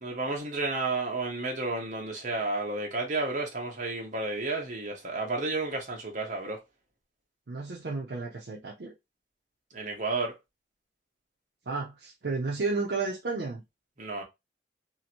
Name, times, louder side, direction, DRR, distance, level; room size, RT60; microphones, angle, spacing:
voice 1, 0.0-6.6 9.7-10.3 14.0-14.2, right 3 dB, 45° right, 1.0 m, -31 dB
voice 2, 7.5-8.9 11.7-13.6, right 3 dB, 65° right, 0.6 m, -32 dB
2.9 x 2.5 x 2.8 m
head